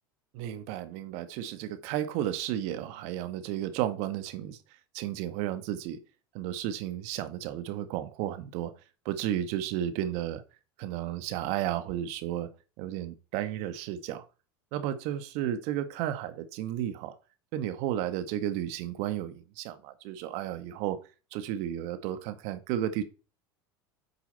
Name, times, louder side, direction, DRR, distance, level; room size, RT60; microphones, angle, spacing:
voice 1, 0.3-4.6 4.9-6.0 6.3-8.7 9.0-10.4 10.8-12.5 12.8-14.2 14.7-17.1 17.5-21.0 21.3-23.0, right 11 dB, 60° right, 1.4 m, -33 dB
8.4 x 5.0 x 4.0 m
supercardioid pair, 105°, 13 cm